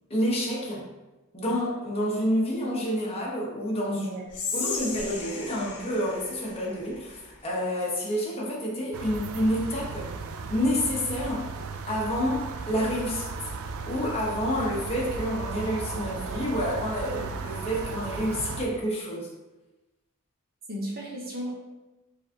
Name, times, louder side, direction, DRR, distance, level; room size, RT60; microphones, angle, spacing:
voice 1, 0.1-0.9 1.3-4.0 4.5-10.1 10.5-11.5 11.9-13.3 13.9-19.3, equal, 25° left, -5 dB, 1.1 m, -28 dB
voice 2, 3.9-4.2 20.7-21.5, equal, 45° right, -4 dB, 0.9 m, -33 dB
Whispering, 4.3-7.5, left 4 dB, 55° left, 1.3 m, -36 dB
sound 1, 8.9-18.7, right 4 dB, 65° right, 0.4 m, -36 dB
4.6 x 3.5 x 2.9 m, 1.1 s
head